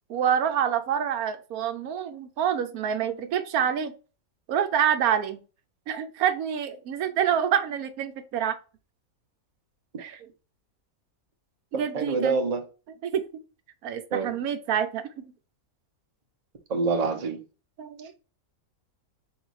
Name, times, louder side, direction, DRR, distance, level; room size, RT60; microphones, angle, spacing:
voice 1, 0.1-3.9 4.5-5.4 5.9-8.6 10.0-10.3 11.7-12.4 13.0-13.2 13.8-15.3 17.8-18.1, right 8 dB, 75° right, 1.1 m, -27 dB
voice 2, 11.7-12.6 14.1-14.4 16.7-17.4, right 4 dB, 40° right, 0.6 m, -26 dB
3.9 x 2.7 x 4.6 m
omnidirectional pair, 1.6 m